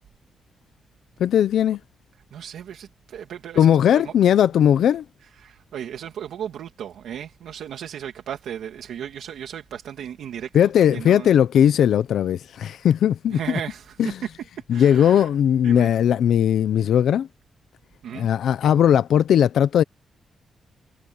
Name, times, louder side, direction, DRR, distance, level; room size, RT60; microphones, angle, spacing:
voice 1, 1.2-1.8 3.6-5.0 10.5-13.4 14.7-17.3 18.1-19.8, left 9 dB, 75° left, 0.7 m, -18 dB
voice 2, 2.3-4.1 5.4-11.3 13.3-14.3 14.7-15.3 15.6-15.9 18.0-18.3, right 9 dB, 85° right, 2.4 m, -35 dB
wide cardioid pair, 155°, 0 cm